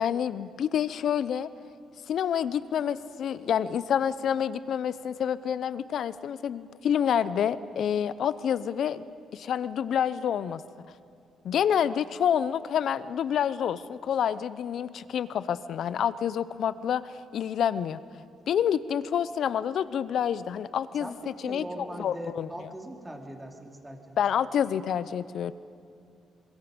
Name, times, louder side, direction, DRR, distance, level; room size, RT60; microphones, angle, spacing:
voice 1, 0.0-1.5 2.1-9.0 9.3-10.6 11.4-18.0 18.5-22.5 24.2-25.5, left 8 dB, 65° left, 16 dB, 0.6 m, -28 dB
voice 2, 21.0-24.2, right 1 dB, 15° right, 2 dB, 2.7 m, -41 dB
25.0 x 21.5 x 5.2 m, 2.4 s
cardioid pair, 90°, 0 cm